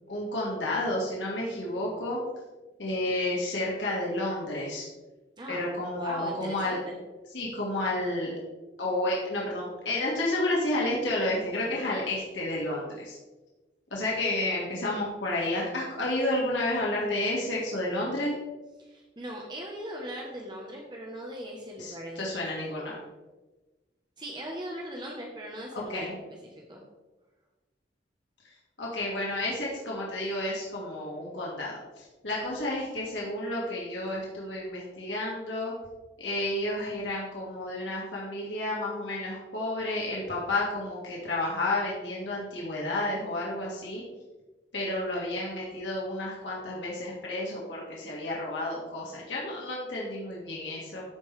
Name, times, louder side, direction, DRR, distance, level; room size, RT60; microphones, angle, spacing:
voice 1, 0.1-2.2 2.8-4.9 5.5-6.8 7.3-8.3 8.8-13.2 13.9-18.4 21.8-23.0 25.7-26.1 28.8-35.7 36.2-44.0 44.7-51.0, left 1 dB, 90° left, -4 dB, 2.2 m, -31 dB
voice 2, 6.0-6.9 18.8-22.2 22.8-23.0 24.2-26.8, equal, 25° right, -1 dB, 1.1 m, -39 dB
13.5 x 5.3 x 3.4 m, 1.2 s
head